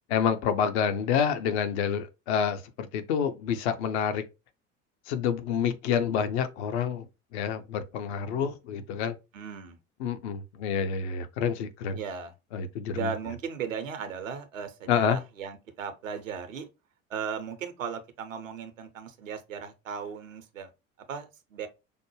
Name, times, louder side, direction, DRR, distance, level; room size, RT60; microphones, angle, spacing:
voice 1, 0.1-4.2 5.1-7.1 7.3-9.2 10.0-12.0 12.5-13.1 14.9-15.2, left 7 dB, 55° left, 0.7 m, -28 dB
voice 2, 9.3-9.8 11.9-12.3 12.9-16.7 17.1-20.7 21.1-21.7, right 6 dB, 75° right, 0.8 m, -36 dB
5.1 x 2.1 x 3.1 m
figure-of-eight pair, 65°, 39 cm